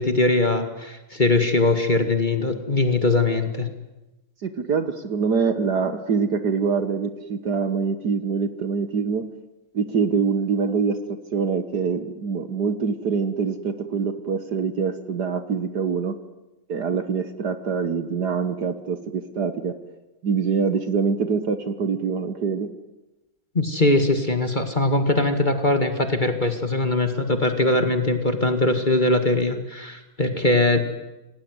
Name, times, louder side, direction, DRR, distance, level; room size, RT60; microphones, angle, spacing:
voice 1, 0.0-3.7 23.5-30.8, left 2 dB, 20° left, 6 dB, 2.1 m, -21 dB
voice 2, 4.4-9.3 9.7-11.0 11.3-16.1 16.7-19.7 20.2-22.7, right 5 dB, 55° right, 9 dB, 1.7 m, -24 dB
27.5 x 19.0 x 9.6 m, 1.1 s
omnidirectional pair, 2.3 m